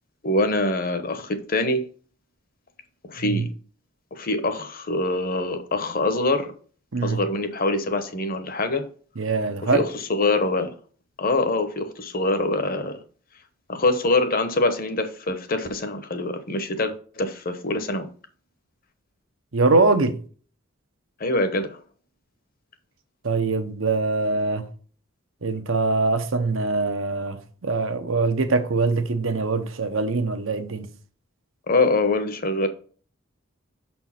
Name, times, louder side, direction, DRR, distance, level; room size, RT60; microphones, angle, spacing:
voice 1, 0.2-1.8 3.0-3.5 4.1-6.5 7.0-8.9 9.6-10.7 11.2-13.0 13.7-18.1 21.2-21.8 31.7-32.7, left 2 dB, 45° left, 1.0 m, -24 dB
voice 2, 9.2-9.9 19.5-20.2 23.2-24.7 25.4-30.9, right 3 dB, 75° right, 0.9 m, -23 dB
6.4 x 4.5 x 5.9 m
head